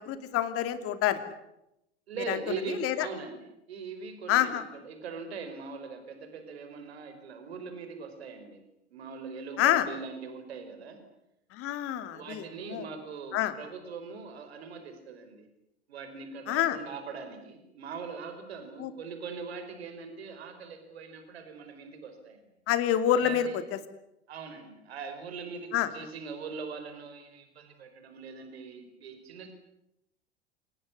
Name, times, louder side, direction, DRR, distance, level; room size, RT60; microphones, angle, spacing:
voice 1, 0.1-1.2 2.3-2.4 2.8-2.9 4.3-4.6 9.6-9.8 11.5-12.4 12.7-12.8 13.3-13.5 16.5-16.8 18.8-18.9 22.7-23.5 25.7-25.9, left 11 dB, 45° left, 11 dB, 3.0 m, -26 dB
voice 2, 2.1-8.6 8.9-11.0 12.1-15.5 15.9-22.4 23.1-23.6 24.3-29.5, right 5 dB, 70° right, 7 dB, 5.0 m, -41 dB
28.0 x 18.5 x 9.8 m, 0.84 s
figure-of-eight pair, 80°, 33 cm